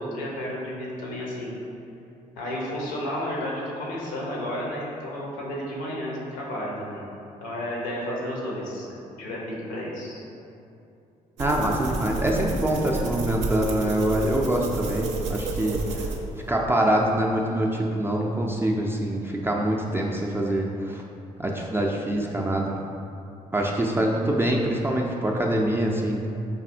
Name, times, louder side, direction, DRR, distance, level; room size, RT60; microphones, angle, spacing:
voice 1, 0.0-1.5 2.4-7.0 7.4-8.9 9.2-10.2 12.9-13.0, equal, 75° left, -4 dB, 0.8 m, -32 dB
voice 2, 11.4-16.1 16.5-21.0 21.4-22.7 23.5-26.3, right 1 dB, 10° right, -2 dB, 0.4 m, -25 dB
sound 1, 11.4-16.5, right 3 dB, 65° right, 0.5 m, -30 dB
4.8 x 2.6 x 2.5 m, 2.7 s
figure-of-eight pair, 45°, 20 cm